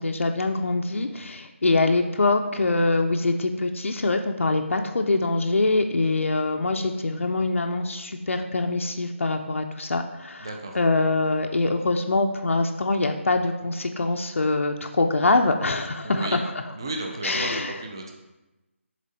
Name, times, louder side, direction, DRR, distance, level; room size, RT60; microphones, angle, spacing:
voice 1, 0.0-16.5 17.2-17.8, left 2 dB, 70° left, 4 dB, 0.5 m, -24 dB
voice 2, 10.4-10.8 16.0-16.4 16.7-17.5 17.8-18.1, right 2 dB, 20° right, 2 dB, 0.4 m, -33 dB
7.4 x 3.6 x 4.1 m, 1.0 s
figure-of-eight pair, 175°, 7 cm